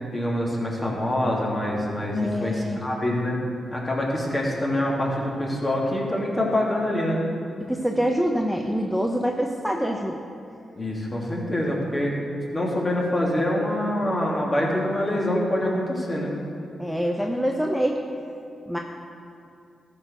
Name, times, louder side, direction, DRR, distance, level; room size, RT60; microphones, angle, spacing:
voice 1, 0.1-3.4 3.7-7.2 10.8-12.1 12.5-16.4, left 1 dB, 30° left, -3 dB, 2.7 m, -25 dB
voice 2, 2.1-2.8 7.6-10.2 16.8-18.0 18.7-18.8, equal, ahead, 1 dB, 0.8 m, -25 dB
13.5 x 4.7 x 6.4 m, 2.5 s
supercardioid pair, 50°, 0 cm